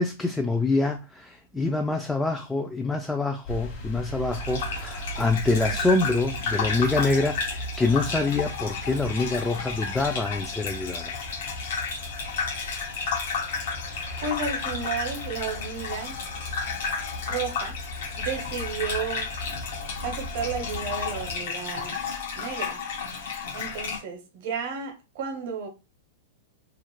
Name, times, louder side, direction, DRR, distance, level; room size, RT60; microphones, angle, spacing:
voice 1, 0.0-11.1, left 3 dB, 10° left, 0.3 m, -26 dB
sound 1, 3.4-21.4, right 1 dB, 45° left, 1.0 m, -38 dB
Gurgling / Bathtub (filling or washing), 4.3-24.0, left 5 dB, 70° left, 0.8 m, -32 dB
voice 2, 14.2-16.2 17.3-19.3 20.0-22.0 22.3-22.8 23.2-25.7, right 5 dB, 60° right, 0.8 m, -33 dB
2.4 x 2.0 x 3.0 m
hypercardioid pair, 115°, 0 cm